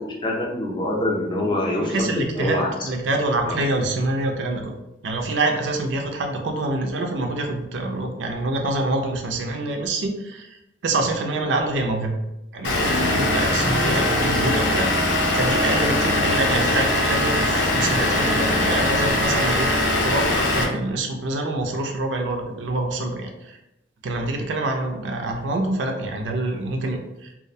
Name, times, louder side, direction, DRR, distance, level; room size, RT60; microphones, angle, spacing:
voice 1, 0.0-2.9 3.4-3.6, left 1 dB, 25° left, -2 dB, 0.5 m, -25 dB
voice 2, 1.7-4.8 5.0-10.6 10.8-12.1 12.5-19.7 20.0-23.6 24.0-27.3, right 2 dB, 80° right, 3 dB, 0.4 m, -26 dB
Vehicle / Engine, 12.6-20.6, left 1 dB, 70° left, 0.5 m, -21 dB
2.4 x 2.1 x 2.6 m, 0.92 s
head